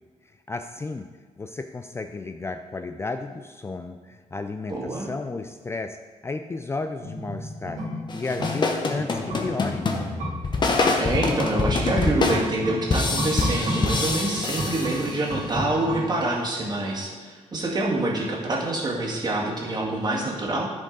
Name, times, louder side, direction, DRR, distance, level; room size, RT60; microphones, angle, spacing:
voice 1, 0.3-1.1 1.4-7.9 8.1-9.9, left 3 dB, 20° left, 7 dB, 0.4 m, -33 dB
voice 2, 4.7-5.1 11.0-20.7, right 2 dB, 35° right, -2 dB, 2.0 m, -26 dB
sound 1, 7.0-16.5 16.8-16.9, equal, 80° right, 2.0 m, -33 dB
sound 2, 8.1-15.5, left 3 dB, 35° left, 1.0 m, -26 dB
10.5 x 5.2 x 3.9 m, 1.5 s
cardioid pair, 100°, 13 cm